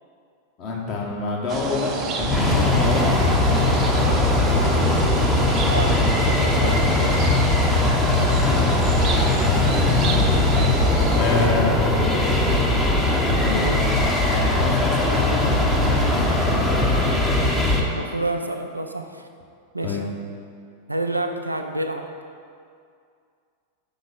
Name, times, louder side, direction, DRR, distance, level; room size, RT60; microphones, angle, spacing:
voice 1, 0.6-3.1 8.4-8.7 11.1-12.0 13.4-13.8 14.2-16.9 19.8-20.1, left 3 dB, 35° left, -2 dB, 1.2 m, -27 dB
sound 1, 1.5-11.5, right 4 dB, 30° right, 0.6 m, -29 dB
sound 2, 2.2-17.8, left 2 dB, 5° left, 0.8 m, -20 dB
voice 2, 5.7-7.4 17.9-19.3 19.7-20.0 20.9-22.1, right 2 dB, 85° right, 5 dB, 0.4 m, -29 dB
6.1 x 3.9 x 5.3 m, 2.3 s
figure-of-eight pair, 90°, 0 cm